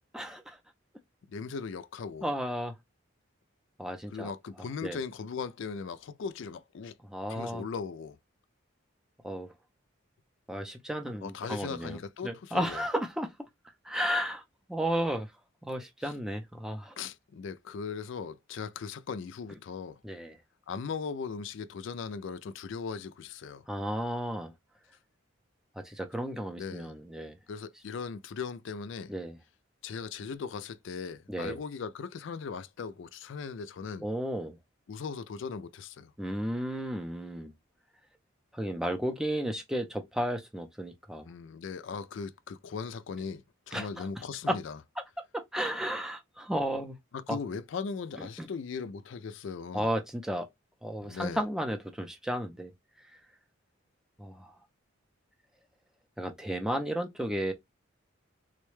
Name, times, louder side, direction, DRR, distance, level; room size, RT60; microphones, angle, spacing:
voice 1, 0.1-0.6 2.2-2.7 3.8-4.3 4.8-5.0 7.1-7.6 9.2-9.5 10.5-13.3 13.8-14.4 14.7-15.3 15.7-16.9 20.0-20.4 23.7-24.5 25.8-27.4 29.1-29.4 31.3-31.6 34.0-34.6 36.2-37.5 38.5-41.3 43.7-44.1 44.5-44.6 45.3-47.0 47.3-47.4 48.2-48.5 49.7-50.5 50.8-52.7 54.2-54.5 56.2-57.5, equal, 5° right, 0.5 m, -33 dB
voice 2, 1.3-2.3 4.1-7.0 7.3-8.2 11.2-12.8 16.0-16.1 17.0-20.0 20.7-23.7 26.6-26.9 27.5-29.1 29.8-34.1 34.9-36.1 41.2-44.8 47.1-49.9 51.0-51.4, left 5 dB, 60° left, 0.3 m, -38 dB
3.8 x 2.2 x 3.1 m
head